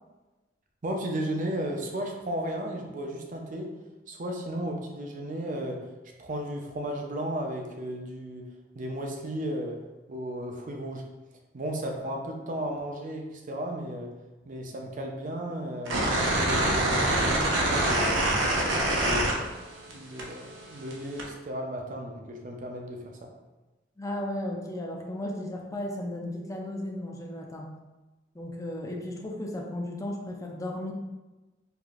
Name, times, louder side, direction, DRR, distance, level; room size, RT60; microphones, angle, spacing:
voice 1, 0.8-3.7 4.1-5.8 6.2-8.5 8.7-9.8 10.1-11.0 11.5-14.1 14.5-16.0 16.3-18.4 18.9-23.3, equal, 45° right, 2 dB, 0.5 m, -34 dB
sound 1, 15.9-19.9 20.2-21.3, right 1 dB, 80° right, 0.7 m, -25 dB
voice 2, 24.0-27.7 28.3-30.9, left 1 dB, 15° left, 0 dB, 0.4 m, -35 dB
4.7 x 2.5 x 2.4 m, 1.1 s
head